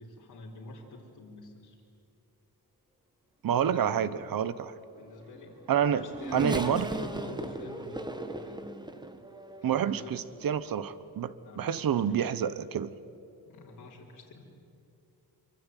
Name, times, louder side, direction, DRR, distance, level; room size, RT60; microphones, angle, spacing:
voice 1, 0.0-1.8 4.9-8.7 9.6-10.6 11.4-12.0 13.5-14.5, left 3 dB, 50° left, 4.2 m, -46 dB
voice 2, 3.4-4.8 5.7-6.0 6.3-6.9 9.6-12.9, right 8 dB, 60° right, 1.1 m, -28 dB
Race car auto racing / Accelerating revving vroom, 5.3-9.9 10.6-10.7 11.8-12.0, right 2 dB, 10° right, 1.4 m, -37 dB
26.0 x 24.0 x 9.2 m
wide cardioid pair, 150°, 38 cm